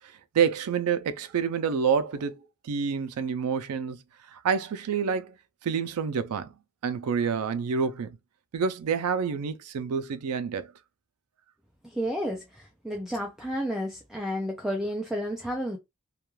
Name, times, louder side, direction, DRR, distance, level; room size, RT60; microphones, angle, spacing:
voice 1, 0.3-4.0 4.3-5.3 5.6-6.5 6.8-8.2 8.5-10.7, right 6 dB, 85° right, 0.4 m, -28 dB
voice 2, 11.8-15.8, equal, ahead, 0.3 m, -31 dB
2.3 x 2.2 x 3.0 m
head